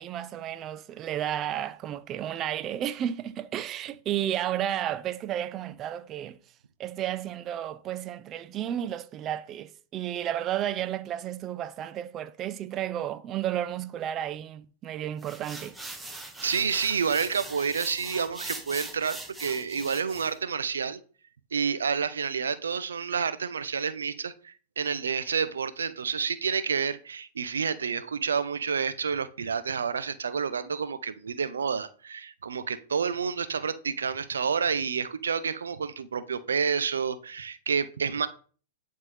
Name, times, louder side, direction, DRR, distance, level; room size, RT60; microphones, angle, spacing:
voice 1, 0.0-6.4 6.8-15.7, right 11 dB, 30° right, 0.4 m, -32 dB
sound 1, 15.2-20.4, right 2 dB, 10° right, 0.9 m, -41 dB
voice 2, 16.4-21.0 21.5-38.3, right 6 dB, 85° right, 0.5 m, -29 dB
9.8 x 3.6 x 3.2 m
hypercardioid pair, 115°, 0 cm